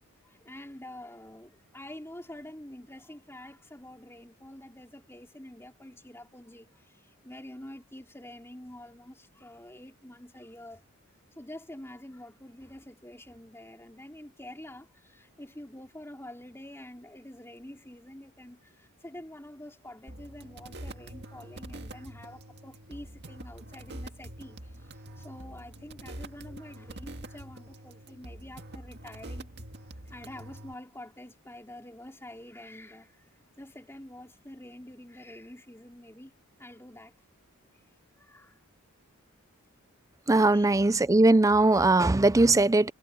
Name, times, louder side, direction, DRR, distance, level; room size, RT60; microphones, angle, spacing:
voice 1, 0.2-10.8 11.4-29.8 30.1-33.3 33.6-36.3 36.6-37.1 37.7-37.9 38.1-38.6 40.4-40.7, left 1 dB, 10° left, 3.9 m, -47 dB
sound 1, 20.1-30.7, right 1 dB, 50° right, 2.1 m, -45 dB
voice 2, 40.3-42.9, right 2 dB, 15° right, 0.4 m, -20 dB
head